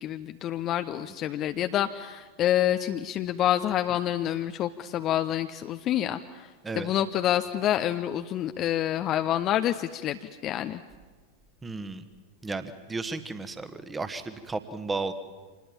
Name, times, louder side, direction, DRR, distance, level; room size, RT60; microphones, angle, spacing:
voice 1, 0.0-6.5 6.8-10.8, left 12 dB, 35° left, 8 dB, 0.7 m, -27 dB
voice 2, 11.6-12.0 12.4-15.1, right 3 dB, 15° right, 11 dB, 1.5 m, -34 dB
26.5 x 20.0 x 7.3 m, 1.4 s
figure-of-eight pair, 90°, 0 cm